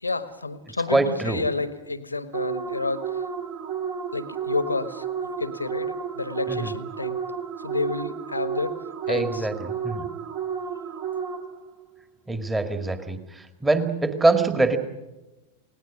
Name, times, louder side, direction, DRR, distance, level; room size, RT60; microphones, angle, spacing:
voice 1, 0.0-3.2 4.1-5.1 5.4-7.2 7.6-8.8 9.1-9.5, left 3 dB, 80° left, 13 dB, 1.4 m, -30 dB
voice 2, 0.9-1.4 6.5-6.7 9.1-10.1 12.3-13.2 13.6-14.8, right 2 dB, 10° right, 7 dB, 2.2 m, -23 dB
sound 1, 2.3-11.7, right 7 dB, 40° right, 2.9 m, -32 dB
29.0 x 19.0 x 6.3 m, 1.0 s
figure-of-eight pair, 90°, 0 cm